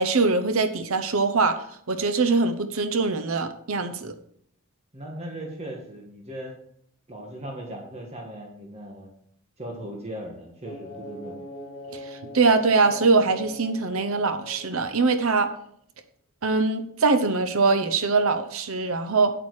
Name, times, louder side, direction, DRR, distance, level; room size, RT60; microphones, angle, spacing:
voice 1, 0.0-4.1 12.3-15.5 16.4-19.3, right 4 dB, 65° right, 10 dB, 0.8 m, -22 dB
voice 2, 4.9-6.5 7.1-9.1 9.6-11.4, right 1 dB, 30° right, 0 dB, 1.6 m, -38 dB
sound 1, 10.6-15.4, left 1 dB, 25° left, 1.9 m, -41 dB
9.0 x 8.4 x 4.9 m, 0.67 s
head